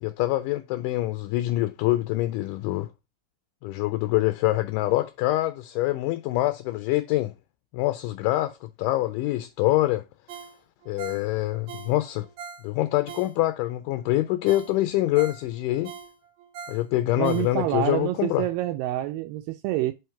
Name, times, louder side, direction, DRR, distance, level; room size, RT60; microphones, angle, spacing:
voice 1, 0.0-2.9 3.6-7.3 7.7-10.0 10.9-12.3 12.6-15.9 16.7-18.5, left 16 dB, 80° left, 2.0 m, -25 dB
Ringtone, 10.3-13.7 14.1-14.2 14.5-17.9 18.3-18.4, right 7 dB, 70° right, 2.0 m, -42 dB
voice 2, 17.2-19.9, right 15 dB, 90° right, 2.2 m, -27 dB
5.7 x 3.1 x 5.6 m
omnidirectional pair, 3.9 m